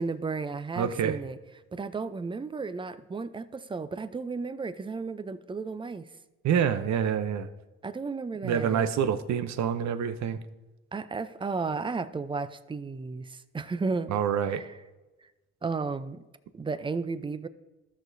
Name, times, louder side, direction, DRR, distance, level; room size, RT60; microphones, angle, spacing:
voice 1, 0.0-1.4 1.7-6.1 7.8-8.9 10.9-14.1 14.5-14.7 15.6-16.2 16.5-17.5, right 4 dB, 15° right, 0.4 m, -33 dB
voice 2, 0.7-1.2 6.4-7.5 8.4-10.4 14.1-14.6, right 8 dB, 65° right, 0.7 m, -27 dB
13.5 x 6.3 x 2.6 m
cardioid pair, 90°, 30 cm